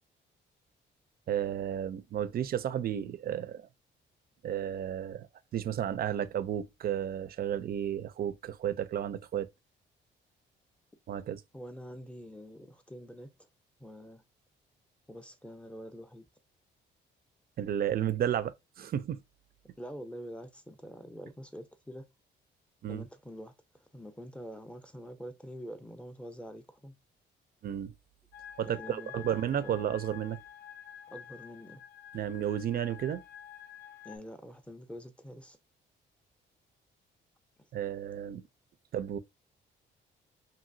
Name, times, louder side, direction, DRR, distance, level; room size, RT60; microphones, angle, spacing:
voice 1, 1.3-3.7 4.4-5.3 5.5-9.5 11.1-11.4 17.6-19.2 22.8-23.0 27.6-27.9 28.6-30.4 32.1-33.2 37.7-38.4 38.9-39.2, right 10 dB, 50° right, 0.4 m, -32 dB
voice 2, 11.5-13.3 13.8-14.2 15.1-16.2 19.8-22.0 22.9-26.9 28.6-29.4 29.6-29.8 31.1-31.8 34.0-35.6, equal, 5° left, 0.5 m, -46 dB
sound 1, 28.3-34.2, left 10 dB, 60° left, 0.5 m, -49 dB
2.8 x 2.6 x 2.6 m
cardioid pair, 90°, 20 cm